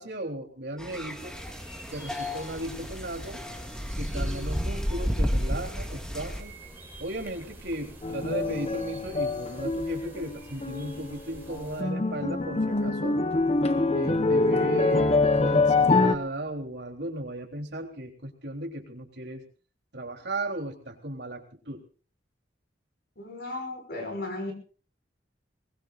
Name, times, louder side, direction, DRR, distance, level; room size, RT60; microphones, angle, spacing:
voice 1, 0.0-1.3 1.9-3.4 4.0-6.6 7.0-13.2 13.9-19.5 19.9-21.8, right 1 dB, 65° right, 2 dB, 3.5 m, -36 dB
sound 1, 0.8-6.4, equal, 5° left, 1.9 m, -32 dB
sound 2, 1.2-11.8, right 1 dB, 10° right, 4.7 m, -47 dB
sound 3, 8.0-10.3 10.6-11.2 11.5-16.2, left 3 dB, 35° left, 1.0 m, -25 dB
voice 2, 23.2-24.5, left 2 dB, 60° left, 5 dB, 5.8 m, -35 dB
22.5 x 20.5 x 2.6 m, 0.39 s
head